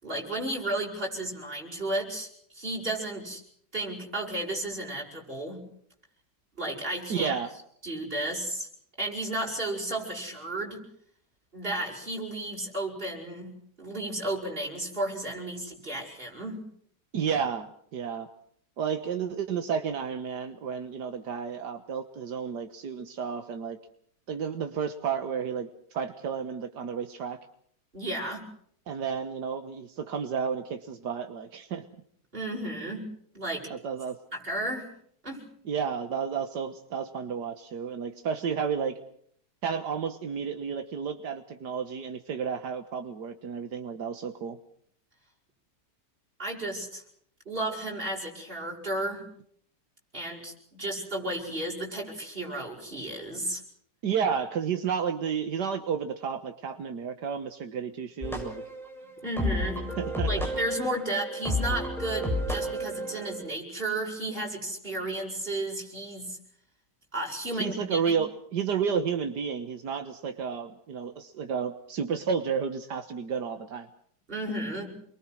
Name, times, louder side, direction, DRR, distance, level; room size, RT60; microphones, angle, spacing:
voice 1, 0.0-2.3 2.5-3.4 3.7-5.6 6.6-7.4 7.8-8.7 9.0-10.8 11.5-16.6 27.9-28.4 32.3-33.1 33.3-33.7 34.3-34.9 35.2-35.4 46.4-47.0 47.5-49.2 50.1-53.6 59.2-66.4 67.1-68.2 74.3-75.0, right 1 dB, 30° right, -1 dB, 7.6 m, -33 dB
voice 2, 7.1-7.5 17.1-18.3 18.8-23.8 24.3-27.4 28.9-31.9 33.7-34.2 35.7-39.0 39.6-44.6 54.0-58.6 60.0-60.5 67.5-73.9, right 7 dB, 80° right, 8 dB, 1.9 m, -31 dB
sound 1, 58.2-63.4, left 1 dB, ahead, 7.6 m, -31 dB
29.5 x 23.0 x 6.3 m, 0.64 s
omnidirectional pair, 1.8 m